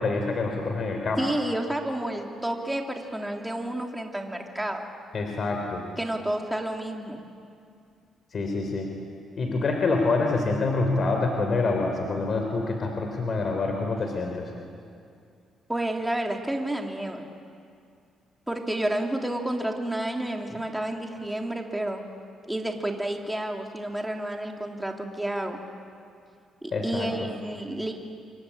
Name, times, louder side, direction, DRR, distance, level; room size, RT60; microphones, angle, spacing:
voice 1, 0.0-1.2 5.1-5.8 8.3-8.9 9.4-14.5 26.7-27.1, left 3 dB, 50° left, 3 dB, 3.7 m, -26 dB
voice 2, 1.2-4.9 6.0-7.2 15.7-17.3 18.5-22.0 22.5-25.6 26.6-27.9, right 1 dB, 10° right, 2 dB, 3.1 m, -30 dB
28.0 x 23.5 x 8.7 m, 2.4 s
cardioid pair, 90°, 0 cm